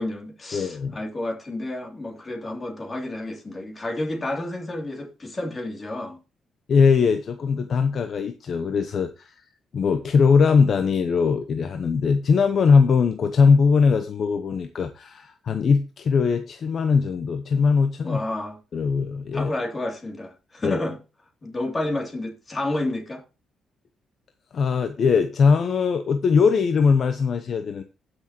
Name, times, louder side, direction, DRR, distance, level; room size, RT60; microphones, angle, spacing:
voice 1, 0.0-6.2 18.0-18.6 19.3-21.0 21.4-23.2, left 1 dB, 30° left, 2.9 m, -30 dB
voice 2, 0.5-1.0 6.7-9.3 9.7-18.2 18.7-19.5 20.6-20.8 24.5-27.8, left 5 dB, 55° left, 0.8 m, -20 dB
16.0 x 6.3 x 3.0 m
cardioid pair, 90°, 0 cm